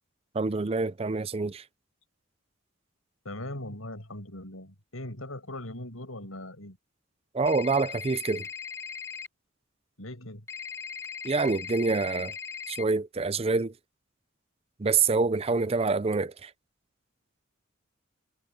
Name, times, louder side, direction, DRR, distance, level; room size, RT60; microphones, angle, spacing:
voice 1, 0.3-1.6 7.3-8.5 11.2-12.3 12.7-13.7 14.8-16.5, right 4 dB, 30° right, 0.5 m, -26 dB
voice 2, 3.2-6.8 10.0-10.4, left 1 dB, 85° left, 6.5 m, -40 dB
sound 1, 7.5-9.3 10.5-12.8, left 6 dB, 15° left, 1.6 m, -39 dB
head